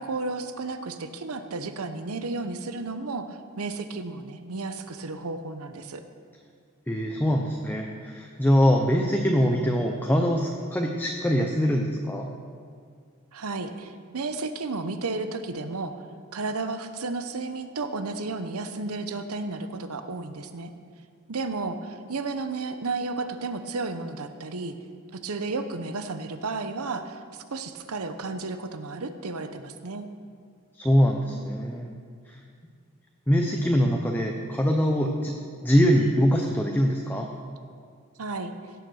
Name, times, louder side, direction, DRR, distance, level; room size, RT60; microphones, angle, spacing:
voice 1, 0.0-6.0 13.3-15.9 16.3-20.7 21.3-24.7 25.1-30.1 38.2-38.5, right 3 dB, 80° right, 9 dB, 0.9 m, -33 dB
voice 2, 6.9-12.3 30.7-31.9 32.3-32.4 33.3-35.3 35.6-37.3, equal, 10° left, 1 dB, 0.7 m, -23 dB
17.0 x 7.0 x 6.4 m, 2.2 s
head